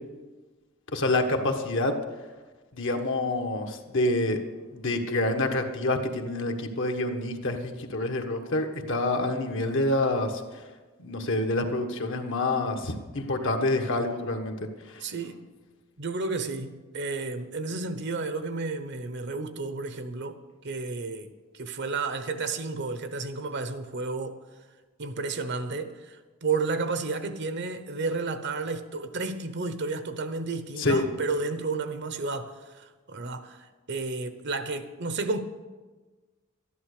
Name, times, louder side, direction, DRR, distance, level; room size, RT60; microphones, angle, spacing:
voice 1, 0.9-1.9 2.7-4.4 4.7-10.4 11.0-14.6 14.9-15.0 30.8-31.0, left 2 dB, 60° left, 1.4 m, -27 dB
voice 2, 15.0-15.5 16.0-24.4 25.0-35.4, right 3 dB, 55° right, 1.0 m, -32 dB
12.5 x 11.0 x 6.6 m
head